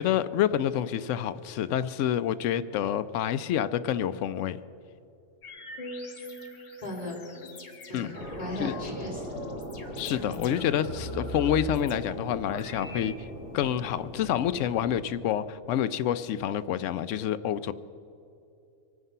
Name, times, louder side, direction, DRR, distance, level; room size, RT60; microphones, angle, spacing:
voice 1, 0.0-4.6 7.9-8.1 8.6-8.7 10.0-13.1 13.5-17.7, left 10 dB, 80° left, 13 dB, 0.9 m, -28 dB
sound 1, 5.4-13.1, left 1 dB, 65° left, 1.8 m, -41 dB
voice 2, 6.8-7.2 7.9-8.1 8.4-9.4, left 1 dB, 30° left, -1 dB, 3.0 m, -37 dB
sound 2, 8.1-15.0, equal, 50° right, 3.9 m, -40 dB
24.0 x 9.7 x 5.5 m, 2.8 s
omnidirectional pair, 1.3 m